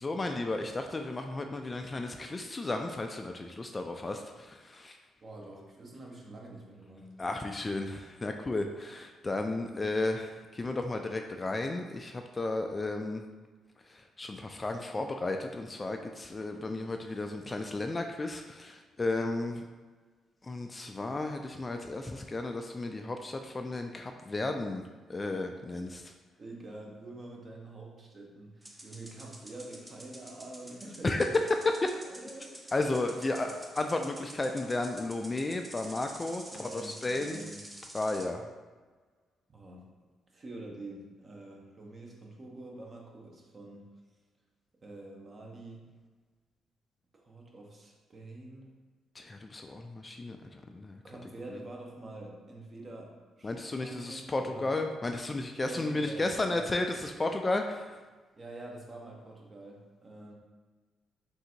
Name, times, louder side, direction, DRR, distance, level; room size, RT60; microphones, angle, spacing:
voice 1, 0.0-5.0 7.2-13.2 13.9-19.6 20.4-24.8 25.1-26.1 31.0-31.9 32.7-37.4 37.9-38.5 49.2-51.0 53.4-58.0, left 2 dB, 25° left, 4 dB, 0.3 m, -33 dB
voice 2, 5.2-7.1 26.4-31.1 32.0-32.5 33.4-33.6 36.5-37.6 39.5-39.9 40.3-43.9 44.8-45.9 47.1-48.8 51.0-54.8 55.6-56.7 58.3-60.3, right 2 dB, 35° right, -1 dB, 0.9 m, -46 dB
sound 1, 28.6-38.3, right 1 dB, 15° right, 0.7 m, -49 dB
3.7 x 2.7 x 4.3 m, 1.4 s
cardioid pair, 90°, 0 cm